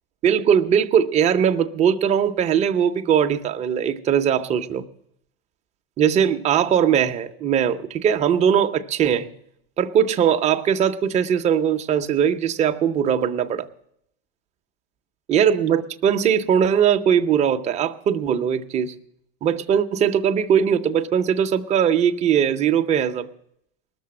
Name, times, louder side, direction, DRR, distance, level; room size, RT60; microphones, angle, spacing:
voice 1, 0.2-4.8 6.0-9.3 9.8-13.7 15.3-18.9 19.4-23.3, right 8 dB, 20° right, 0.6 m, -20 dB
19.5 x 6.8 x 7.4 m
supercardioid pair, 150°, 32 cm